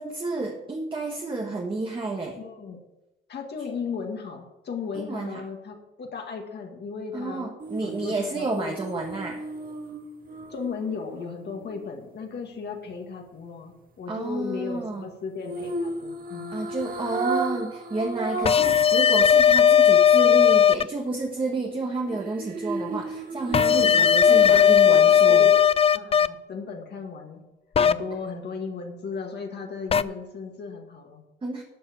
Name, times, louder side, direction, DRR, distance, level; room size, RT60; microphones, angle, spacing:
voice 1, 0.0-2.4 4.9-5.4 7.1-9.4 14.1-15.1 16.5-25.5 31.4-31.6, right 3 dB, 25° right, 1 dB, 1.4 m, -30 dB
voice 2, 2.4-2.8 3.3-7.5 7.8-9.0 10.5-16.6 18.6-18.8 23.7-25.6 25.9-27.4 27.8-31.2, left 5 dB, 55° left, 2 dB, 1.9 m, -36 dB
sound 1, 7.6-11.8 15.4-18.8 19.2-19.3 22.1-25.0 25.3-25.5, right 2 dB, 45° right, 1.6 m, -34 dB
sound 2, 18.5-20.8 23.5-26.3 27.8-27.9 29.9-30.0, left 8 dB, 30° left, 0.4 m, -17 dB
12.5 x 4.9 x 8.4 m, 0.95 s
cardioid pair, 115°, 20 cm